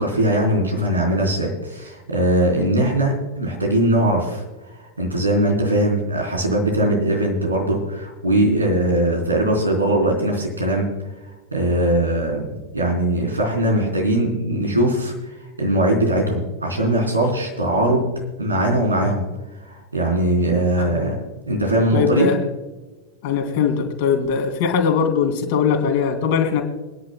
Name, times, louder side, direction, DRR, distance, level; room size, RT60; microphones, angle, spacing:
voice 1, 0.0-4.4 4.7-10.9 11.5-18.0 18.4-19.3 19.6-21.2 21.5-22.3, right 1 dB, 80° right, 1 dB, 3.6 m, -20 dB
voice 2, 21.9-22.4 23.2-26.6, left 6 dB, 50° left, 4 dB, 2.7 m, -20 dB
26.5 x 10.5 x 2.2 m, 1.1 s
figure-of-eight pair, 90°, 0 cm